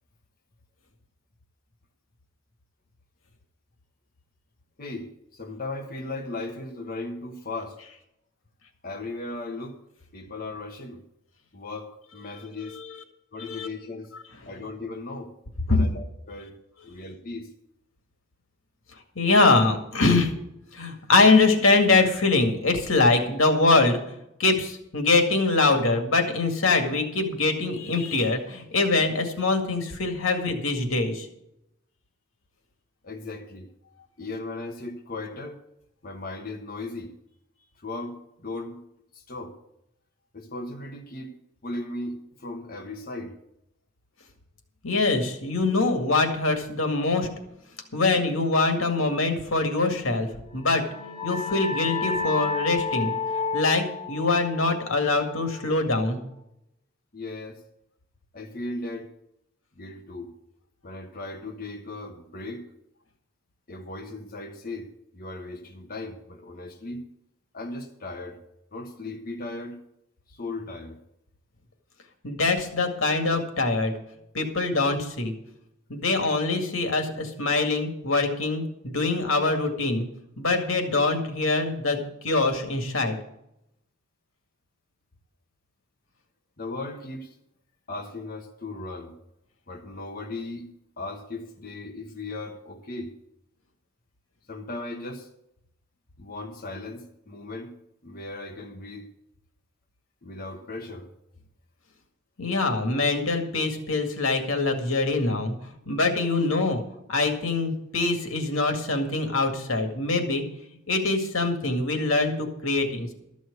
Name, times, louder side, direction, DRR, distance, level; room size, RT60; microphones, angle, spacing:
voice 1, 4.8-7.8 8.8-9.8 10.1-11.0 11.5-12.8 13.3-14.1 14.4-15.3 15.7-16.6 16.8-17.5 33.0-33.7 34.2-35.6 36.0-37.1 37.8-38.8 39.1-39.6 40.3-41.3 41.6-43.3 57.1-57.6 58.3-59.1 59.7-60.3 60.8-62.7 63.7-64.9 65.1-67.0 67.5-68.4 68.7-69.8 70.3-71.0 86.6-87.3 87.9-89.1 89.7-90.7 91.0-93.1 94.5-95.3 96.2-97.7 98.0-99.1 100.2-101.1, left 2 dB, 45° left, 1.2 m, -37 dB
voice 2, 12.6-13.0 13.3-13.7 15.7-15.9 19.2-20.3 20.7-24.0 24.4-31.3 44.8-47.3 47.9-50.9 51.2-53.1 53.5-56.2 72.2-73.9 74.3-75.3 75.9-80.1 80.4-83.2 102.4-105.5 105.9-106.8 107.1-110.4 110.9-113.1, left 3 dB, 85° left, 2.1 m, -23 dB
sound 1, 50.6-55.9, left 5 dB, 30° left, 2.3 m, -31 dB
13.0 x 6.3 x 8.1 m
head